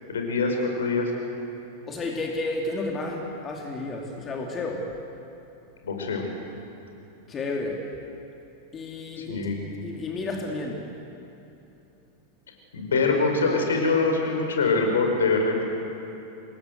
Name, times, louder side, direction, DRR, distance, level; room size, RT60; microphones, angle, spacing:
voice 1, 0.1-1.1 5.8-6.3 9.2-9.6 12.7-15.6, left 3 dB, 65° left, 3 dB, 5.2 m, -24 dB
voice 2, 1.9-4.9 7.3-7.9 8.7-9.4 9.8-10.9, left 2 dB, 25° left, 0 dB, 2.8 m, -31 dB
26.5 x 20.5 x 8.1 m, 2.9 s
figure-of-eight pair, 90°, 0 cm